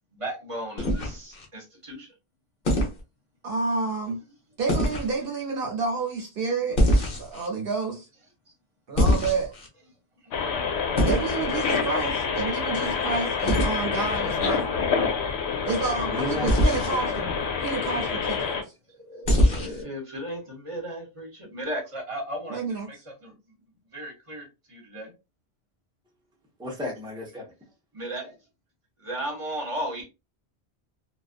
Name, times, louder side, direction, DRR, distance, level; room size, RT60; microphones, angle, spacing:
voice 1, 0.1-2.1 19.0-22.6 22.9-23.0 23.2-23.3 23.9-25.1 27.9-28.3 29.0-30.0, right 1 dB, 30° right, 1.0 m, -35 dB
sound 1, 0.8-1.4 2.6-3.0 4.7-5.1 6.8-7.5 9.0-9.7 11.0-11.3 13.5-13.7 16.5-17.0 19.2-19.8, equal, 55° left, 0.9 m, -22 dB
voice 2, 3.4-4.2 4.6-6.8 7.2-8.1 8.9-9.5 11.0-14.6 15.6-17.3 17.6-18.7 22.5-23.0, right 4 dB, 65° right, 0.8 m, -29 dB
sound 2, 10.3-18.6, left 5 dB, 85° left, 0.8 m, -27 dB
voice 3, 16.1-16.5 16.9-17.0 26.6-27.5, left 2 dB, 5° right, 0.6 m, -32 dB
2.5 x 2.3 x 2.4 m
omnidirectional pair, 1.1 m